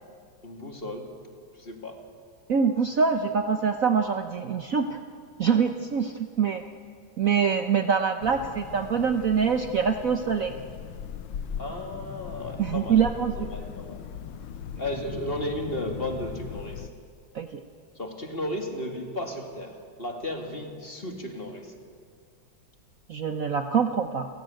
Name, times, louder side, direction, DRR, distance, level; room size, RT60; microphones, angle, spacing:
voice 1, 0.4-1.1 1.6-2.0 11.6-13.0 13.5-14.0 14.8-16.9 18.0-21.7, left 1 dB, 30° left, 3 dB, 2.5 m, -34 dB
voice 2, 2.5-5.0 5.4-6.6 7.2-10.5 12.6-13.5 17.3-17.6 23.1-24.3, right 6 dB, 50° right, 6 dB, 1.2 m, -24 dB
sound 1, 8.2-16.9, left 8 dB, 85° left, 1.8 m, -39 dB
29.0 x 17.0 x 9.0 m, 2.1 s
omnidirectional pair, 2.2 m